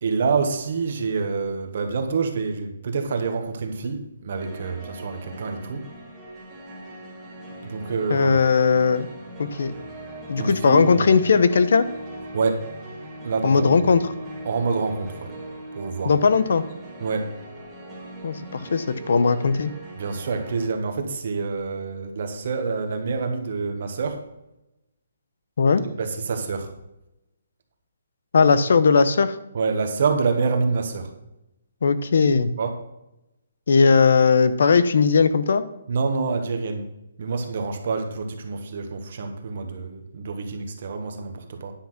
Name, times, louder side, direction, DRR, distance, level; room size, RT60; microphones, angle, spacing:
voice 1, 0.0-5.8 7.6-8.4 10.4-11.1 12.3-12.6 13.2-13.7 14.4-15.3 15.7-16.1 17.0-17.3 20.0-24.2 25.8-26.7 29.5-31.1 32.6-32.7 35.9-36.8 37.2-41.7, right 4 dB, 40° right, 5 dB, 1.4 m, -27 dB
sound 1, 4.4-20.7, right 1 dB, 5° right, 1.4 m, -39 dB
voice 2, 8.1-9.1 9.4-9.7 10.3-11.8 13.4-14.1 16.0-16.6 18.2-19.7 25.6-25.8 28.3-29.3 31.8-32.5 33.7-35.6, left 5 dB, 55° left, 13 dB, 0.7 m, -18 dB
10.0 x 5.8 x 5.8 m, 0.89 s
hypercardioid pair, 175°, 0 cm